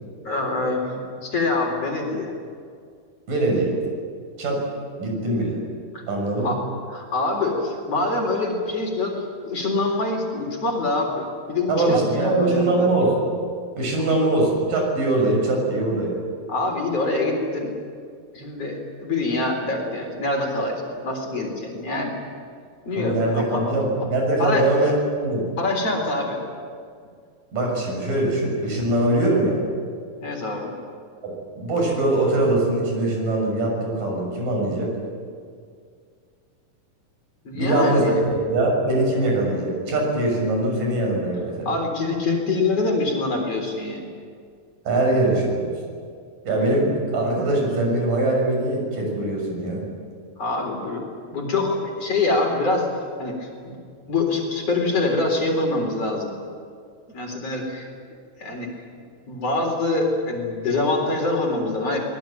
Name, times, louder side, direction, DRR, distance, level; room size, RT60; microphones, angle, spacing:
voice 1, 0.2-2.3 5.9-6.0 6.4-12.9 13.9-14.3 16.5-17.7 18.3-22.1 22.8-23.8 24.4-24.7 25.6-26.4 30.2-30.7 37.4-38.2 41.7-44.1 50.4-53.8 54.1-56.3 57.1-57.9 58.4-58.7 59.3-62.0, left 2 dB, 45° left, 1 dB, 4.8 m, -25 dB
voice 2, 3.3-3.7 4.4-4.6 5.0-5.6 6.1-6.5 11.7-13.3 13.8-16.2 22.9-25.5 27.5-29.6 31.2-34.9 37.5-41.7 44.8-45.8 46.4-49.8, right 2 dB, 65° right, 0 dB, 8.2 m, -22 dB
25.0 x 20.0 x 9.2 m, 2.1 s
omnidirectional pair, 4.1 m